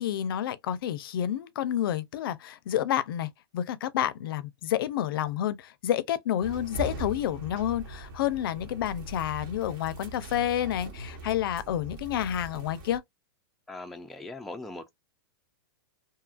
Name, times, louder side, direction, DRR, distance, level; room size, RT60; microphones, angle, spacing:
voice 1, 0.0-13.0, left 11 dB, 70° left, 0.4 m, -29 dB
sound 1, 6.4-13.0, right 2 dB, 55° right, 1.2 m, -41 dB
voice 2, 13.7-14.9, left 2 dB, ahead, 0.3 m, -40 dB
2.8 x 2.3 x 2.4 m
hypercardioid pair, 140°, 12 cm